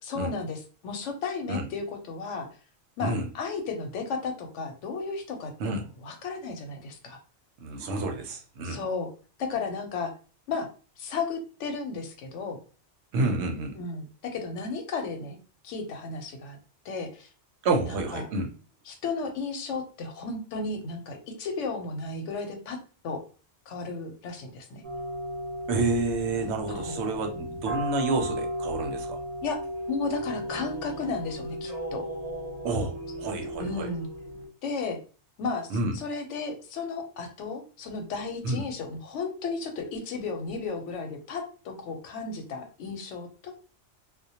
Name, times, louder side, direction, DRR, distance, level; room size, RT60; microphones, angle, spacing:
voice 1, 0.0-2.5 3.0-7.2 8.6-9.1 9.4-10.1 10.5-10.7 11.0-12.6 13.8-15.4 15.6-16.6 16.8-17.3 17.9-18.3 18.9-22.8 23.0-23.2 23.7-24.8 26.7-27.0 29.4-29.6 29.9-32.0 33.6-34.1 34.6-35.0 35.4-43.5, left 4 dB, 90° left, 5 dB, 0.9 m, -34 dB
voice 2, 7.6-8.8 13.1-13.7 17.6-18.5 25.7-29.2 32.6-33.9 35.7-36.0 38.4-38.6, right 3 dB, 75° right, 3 dB, 0.8 m, -29 dB
sound 1, 24.8-34.5, equal, 40° right, 0.6 m, -35 dB
2.2 x 2.1 x 2.7 m, 0.37 s
omnidirectional pair, 1.2 m